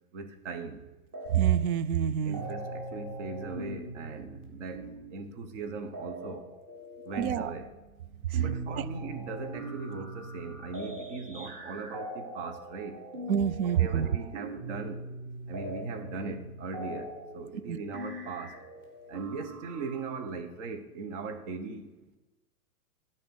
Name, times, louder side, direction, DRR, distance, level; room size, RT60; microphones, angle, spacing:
voice 1, 0.1-0.9 2.2-6.5 7.0-7.7 8.3-13.0 13.6-15.0 15.5-18.6 19.1-22.2, right 4 dB, 50° right, 8 dB, 1.3 m, -39 dB
sound 1, 1.1-1.8 2.0-20.3, right 1 dB, 25° right, 1.8 m, -42 dB
voice 2, 1.3-2.4 7.2-7.5 8.3-8.4 8.8-8.9 13.3-14.1 17.7-17.8, right 9 dB, 65° right, 18 dB, 0.6 m, -26 dB
12.5 x 4.4 x 6.3 m, 1.1 s
figure-of-eight pair, 110°, 46 cm